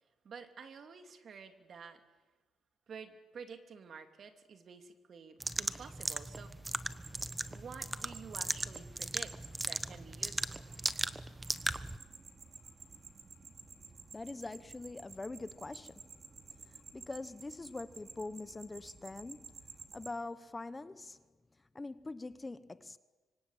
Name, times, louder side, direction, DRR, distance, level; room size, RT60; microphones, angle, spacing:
voice 1, 0.2-2.0 2.9-6.5 7.5-10.6 11.1-11.2, right 6 dB, 55° right, 7 dB, 2.8 m, -50 dB
sound 1, 5.4-12.0, right 2 dB, 15° right, 1.2 m, -38 dB
Cricket Loud, 6.3-20.1, right 4 dB, 40° right, 3.2 m, -53 dB
voice 2, 14.1-16.0 16.7-19.6 19.9-21.2 21.7-23.0, left 2 dB, 20° left, 14 dB, 1.1 m, -44 dB
26.0 x 24.0 x 9.0 m, 1.2 s
cardioid pair, 90°, 0 cm